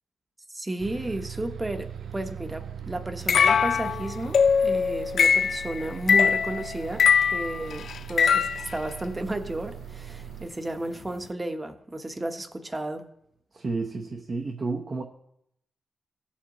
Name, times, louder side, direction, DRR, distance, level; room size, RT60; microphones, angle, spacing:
voice 1, 0.5-13.0, right 1 dB, 20° right, 6 dB, 1.0 m, -33 dB
Bus, 0.8-10.5, right 10 dB, 80° right, 0.4 m, -40 dB
sound 1, 3.3-8.8, left 6 dB, 70° left, 0.3 m, -22 dB
voice 2, 13.5-15.0, right 3 dB, 45° right, 2 dB, 0.9 m, -31 dB
17.0 x 7.2 x 3.0 m, 0.76 s
wide cardioid pair, 120°, 0 cm